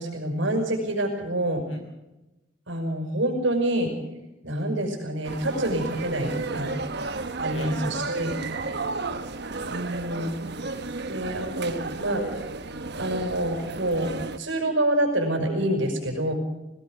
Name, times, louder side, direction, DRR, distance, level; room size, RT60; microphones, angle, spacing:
voice 1, 0.0-1.6 2.7-3.9 4.4-6.7 7.4-8.4 9.7-10.3 11.0-12.2 13.0-16.3, right 1 dB, 75° right, 2 dB, 5.8 m, -27 dB
sound 1, 5.2-14.4, right 3 dB, 60° right, 1.1 m, -33 dB
voice 2, 6.4-7.1 7.5-7.8 8.4-9.0, left 1 dB, 85° left, 4 dB, 6.3 m, -48 dB
22.0 x 18.0 x 6.6 m, 0.99 s
head